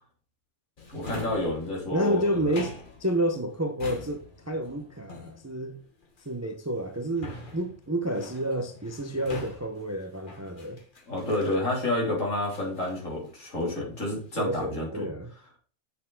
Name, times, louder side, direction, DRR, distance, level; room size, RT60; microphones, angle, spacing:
Drawer open or close, 0.8-12.0 12.5-13.8 14.1-14.6, left 3 dB, 35° left, 1.5 m, -45 dB
voice 1, 0.9-2.4 11.1-15.1, left 1 dB, 60° left, 3.7 m, -29 dB
voice 2, 1.9-5.8 6.2-10.8 14.4-15.3, right 1 dB, 15° right, 0.6 m, -30 dB
8.5 x 6.4 x 4.0 m
omnidirectional pair, 1.5 m